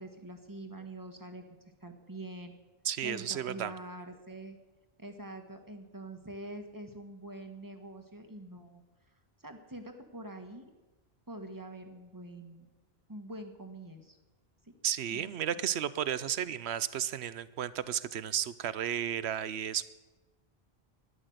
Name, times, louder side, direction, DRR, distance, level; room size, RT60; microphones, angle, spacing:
voice 1, 0.0-1.5 1.8-2.5 3.0-4.6 5.0-8.8 9.4-10.7 11.3-12.7 13.1-14.2 14.7-14.8 15.1-15.3, right 1 dB, 20° right, 6 dB, 1.6 m, -45 dB
voice 2, 2.8-3.7 14.8-19.9, right 9 dB, 85° right, 16 dB, 1.0 m, -33 dB
12.5 x 11.0 x 7.9 m, 1.2 s
omnidirectional pair, 1.1 m